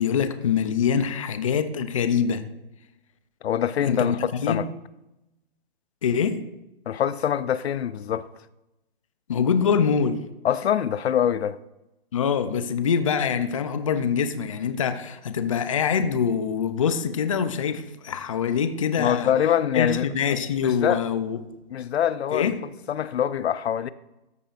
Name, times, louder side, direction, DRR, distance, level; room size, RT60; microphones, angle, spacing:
voice 1, 0.0-2.4 3.8-4.6 6.0-6.4 9.3-10.2 12.1-19.3 19.7-21.4 22.3-22.6, left 7 dB, 35° left, 0.5 m, -24 dB
voice 2, 3.4-4.7 6.9-8.3 10.4-11.6 19.0-20.1 20.6-21.0 21.7-22.5 22.9-23.9, left 9 dB, 90° left, 0.6 m, -24 dB
14.0 x 8.4 x 2.5 m
hypercardioid pair, 170°, 31 cm